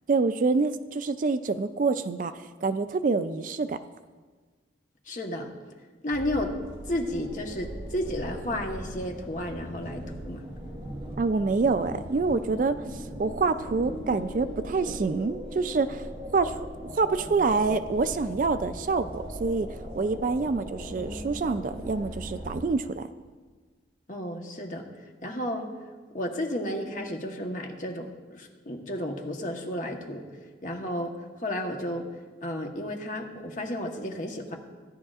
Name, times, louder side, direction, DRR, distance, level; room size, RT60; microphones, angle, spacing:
voice 1, 0.1-3.8 11.2-16.0 16.3-23.1, right 4 dB, 45° right, 11 dB, 0.3 m, -27 dB
voice 2, 5.1-5.5 6.0-6.6 6.9-10.4 24.1-24.9 25.2-25.7 26.1-30.3 30.6-34.6, left 1 dB, 45° left, 2 dB, 1.1 m, -32 dB
sound 1, 6.1-22.6, equal, 25° right, 1.9 m, -39 dB
16.5 x 10.5 x 2.4 m, 1.4 s
head